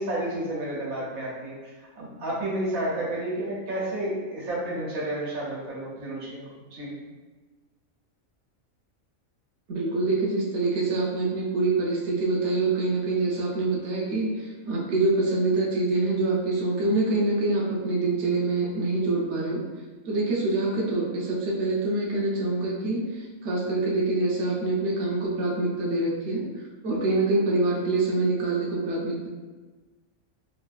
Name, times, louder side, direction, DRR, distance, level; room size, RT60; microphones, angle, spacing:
voice 1, 0.0-1.5 2.0-6.4 6.7-7.0, right 1 dB, 90° right, -6 dB, 1.3 m, -31 dB
voice 2, 9.7-19.6 20.1-26.4 26.8-29.3, right 2 dB, 65° right, -3 dB, 0.8 m, -25 dB
3.0 x 2.5 x 2.4 m, 1.3 s
omnidirectional pair, 1.4 m